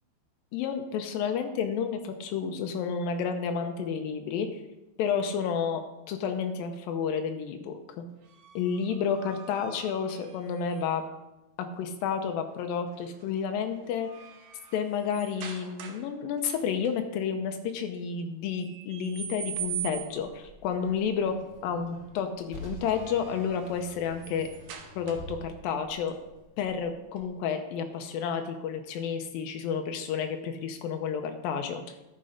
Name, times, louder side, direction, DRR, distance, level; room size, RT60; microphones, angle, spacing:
voice 1, 0.5-4.6 5.0-5.8 6.1-8.1 8.6-11.0 11.8-14.1 14.7-21.3 21.6-24.5 25.0-26.2 26.6-31.8, left 6 dB, 90° left, 6 dB, 2.0 m, -31 dB
sound 1, 8.2-11.1 12.9-13.3 13.7-16.1 16.4-16.9 18.4-20.3 22.6-25.5, right 9 dB, 75° right, 2.0 m, -42 dB
Car, 19.6-27.2, equal, 60° left, 0.9 m, -48 dB
12.5 x 6.8 x 5.1 m, 0.98 s
omnidirectional pair, 5.2 m